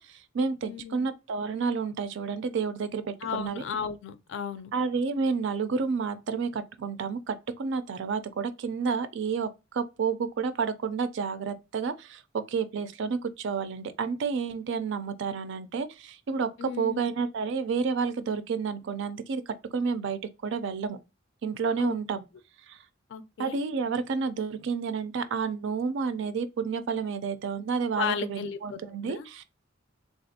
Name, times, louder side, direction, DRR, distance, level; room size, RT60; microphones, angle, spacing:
voice 1, 0.0-3.6 4.7-21.0 21.4-22.2 22.7-22.8 23.4-29.4, right 5 dB, 65° right, 0.4 m, -30 dB
voice 2, 0.6-1.1 3.2-4.7 16.6-17.0 21.8-21.9 23.1-23.6 27.9-29.3, left 7 dB, 65° left, 0.4 m, -34 dB
3.5 x 2.4 x 2.6 m
head